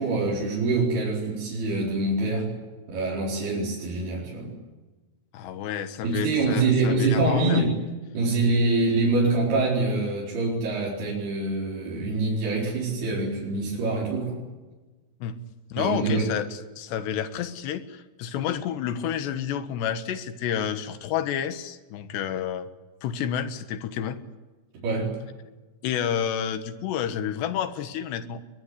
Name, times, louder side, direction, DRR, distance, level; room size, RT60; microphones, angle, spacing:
voice 1, 0.0-2.5 2.9-4.5 6.0-7.8 8.1-14.4 15.8-16.3 24.8-25.1, right 3 dB, 65° right, -5 dB, 6.5 m, -25 dB
voice 2, 5.3-7.6 15.2-15.4 15.7-22.7 23.0-24.2 25.8-28.4, left 9 dB, 80° left, 10 dB, 3.6 m, -30 dB
22.0 x 22.0 x 9.8 m, 1.2 s
omnidirectional pair, 4.9 m